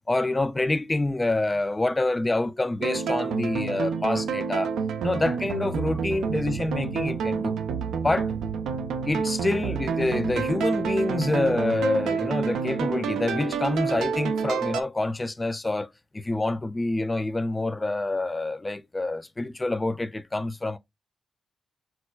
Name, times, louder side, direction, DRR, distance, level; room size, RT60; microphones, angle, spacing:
voice 1, 0.1-4.7 5.0-7.6 7.9-8.3 9.1-20.8, left 2 dB, 25° left, 0.4 m, -27 dB
sound 1, 2.8-14.8, right 6 dB, 80° right, 0.3 m, -28 dB
4.5 x 2.1 x 2.2 m
hypercardioid pair, 40°, 0 cm